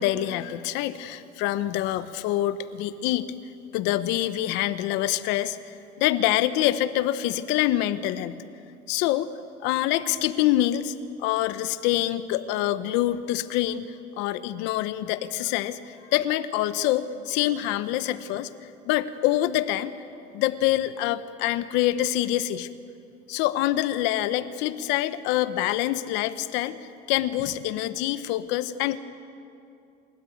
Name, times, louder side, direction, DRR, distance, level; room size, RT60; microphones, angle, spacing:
voice 1, 0.0-3.3 3.7-8.4 8.9-9.3 9.6-10.9 11.2-18.5 18.8-20.0 20.3-22.7 23.3-26.8 27.1-29.0, left 14 dB, 70° left, 13 dB, 1.0 m, -26 dB
27.5 x 13.5 x 9.2 m, 2.6 s
cardioid pair, 155°, 19 cm